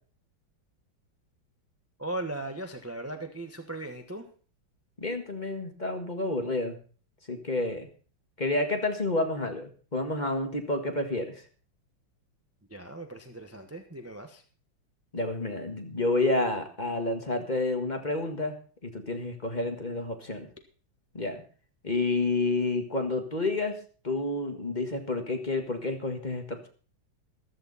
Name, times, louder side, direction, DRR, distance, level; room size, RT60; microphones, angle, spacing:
voice 1, 2.0-4.3 12.7-14.4, right 2 dB, 10° right, 5 dB, 0.8 m, -38 dB
voice 2, 5.0-6.8 7.3-7.9 8.4-11.4 15.1-18.6 18.8-20.5 21.1-21.4 21.8-23.8 24.0-26.7, left 2 dB, 25° left, 5 dB, 1.7 m, -29 dB
14.5 x 13.5 x 4.1 m, 0.40 s
omnidirectional pair, 2.2 m